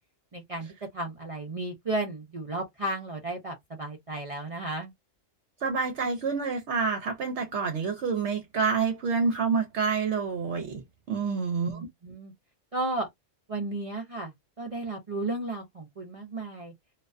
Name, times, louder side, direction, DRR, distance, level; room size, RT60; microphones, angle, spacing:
voice 1, 0.3-0.7 0.9-4.9 11.2-12.3 12.7-13.1 13.5-16.7, right 2 dB, 45° right, 0.4 m, -34 dB
voice 2, 5.6-10.8 11.1-11.8, right 5 dB, 70° right, 0.9 m, -28 dB
2.4 x 2.2 x 2.4 m
omnidirectional pair, 1.3 m